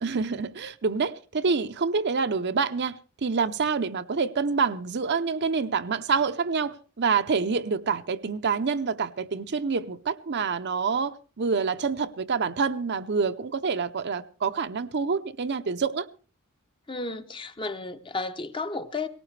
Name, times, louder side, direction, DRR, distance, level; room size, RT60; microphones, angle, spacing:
voice 1, 0.0-16.1, right 5 dB, 50° right, 0.7 m, -27 dB
voice 2, 16.9-19.1, left 3 dB, 25° left, 0.8 m, -33 dB
18.0 x 18.0 x 3.3 m
head